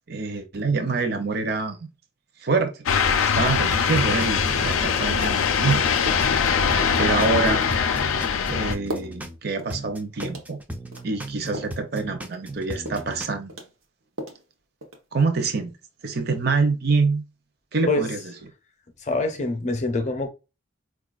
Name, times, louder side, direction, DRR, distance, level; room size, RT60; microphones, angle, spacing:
voice 1, 0.1-1.9 2.4-2.7 3.0-5.8 7.0-7.6 8.5-10.6 11.0-13.6 15.1-15.7 16.0-17.2 17.7-18.2, right 4 dB, 50° right, 0.6 m, -25 dB
sound 1, 2.9-8.7, left 6 dB, 90° left, 0.4 m, -22 dB
sound 2, 3.5-5.4 5.7-9.4 9.7-13.3, right 1 dB, 10° right, 0.3 m, -36 dB
sound 3, 5.6-5.8 6.1-6.4 6.8-7.0 7.5-7.8 8.2-8.4 8.9-9.2 9.6-9.7 10.2-10.5 10.9-11.8 12.2-12.5 12.9-13.2 13.5-14.5 14.8-15.2, equal, 90° right, 0.8 m, -36 dB
voice 2, 19.0-20.3, left 2 dB, 35° left, 0.6 m, -25 dB
4.6 x 2.3 x 2.4 m
head